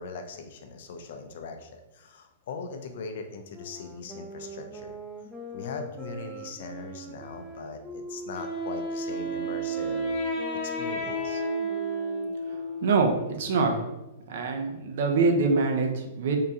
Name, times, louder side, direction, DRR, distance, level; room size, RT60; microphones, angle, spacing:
voice 1, 0.0-5.0 5.5-10.2 10.6-11.4, left 4 dB, 65° left, 5 dB, 0.4 m, -40 dB
sound 1, 3.5-13.5, right 1 dB, 10° right, 0.4 m, -43 dB
Wind instrument woodwind instrument, 8.3-13.1, right 1 dB, 30° left, 1.0 m, -31 dB
voice 2, 12.8-13.7 14.3-16.4, right 4 dB, 65° right, 4 dB, 0.5 m, -24 dB
3.7 x 2.2 x 2.7 m, 0.99 s
hypercardioid pair, 115°, 0 cm